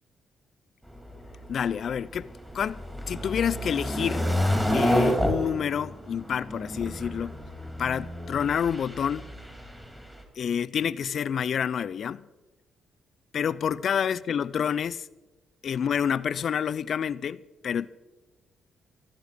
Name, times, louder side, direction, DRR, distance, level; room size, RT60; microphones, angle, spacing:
sound 1, 0.9-10.2, equal, 5° right, 2.9 m, -30 dB
voice 1, 1.5-4.3 4.7-7.3 7.8-9.3 10.4-12.3 13.3-15.1 15.6-17.9, left 8 dB, 55° left, 0.5 m, -28 dB
14.5 x 12.5 x 5.1 m
cardioid pair, 90°, 0 cm